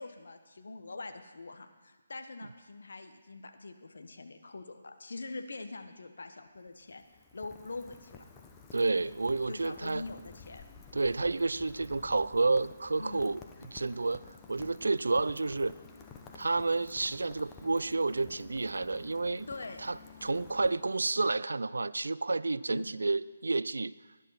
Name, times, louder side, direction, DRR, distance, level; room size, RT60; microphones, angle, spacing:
voice 1, 0.0-7.0 7.3-8.3 8.9-9.1 9.5-10.6 13.0-13.2 19.5-19.9 22.7-23.0, left 3 dB, 75° left, 7 dB, 1.3 m, -44 dB
Rain, 6.5-21.3, left 5 dB, 15° left, 1.0 m, -52 dB
voice 2, 8.7-10.0 10.9-14.2 14.5-15.7 16.3-19.5 19.8-20.0 20.2-23.9, right 3 dB, 80° right, 18 dB, 0.4 m, -30 dB
17.5 x 10.5 x 4.2 m, 1.3 s
figure-of-eight pair, 155°, 0 cm